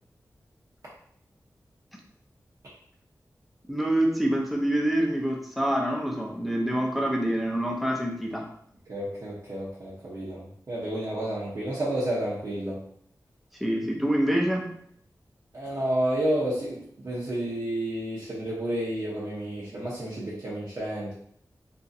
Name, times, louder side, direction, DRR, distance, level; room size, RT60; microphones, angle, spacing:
voice 1, 3.7-8.5 13.6-14.7, right 1 dB, ahead, 0 dB, 0.5 m, -26 dB
voice 2, 8.9-12.8 15.5-21.1, right 1 dB, 55° right, -8 dB, 0.7 m, -30 dB
2.9 x 2.5 x 2.6 m, 0.68 s
wide cardioid pair, 90°, 7 cm